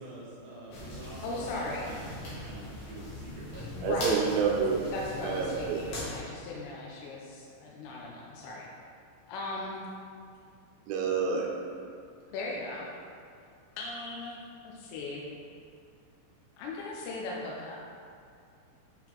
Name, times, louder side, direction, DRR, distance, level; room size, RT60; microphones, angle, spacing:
voice 1, 0.0-3.9, right 1 dB, 65° right, -7 dB, 2.5 m, -45 dB
sound 1, 0.7-6.2, left 2 dB, 65° left, 1.8 m, -41 dB
voice 2, 1.2-1.9 3.7-4.2 4.9-8.7 9.3-9.8 12.3-12.9 13.8-14.4 14.6-15.3 16.6-17.8, left 2 dB, 85° left, -3 dB, 3.2 m, -38 dB
voice 3, 3.8-4.8 5.2-5.8 10.9-11.5, right 5 dB, 80° right, -1 dB, 3.1 m, -28 dB
8.6 x 3.9 x 4.5 m, 2.3 s
omnidirectional pair, 5.9 m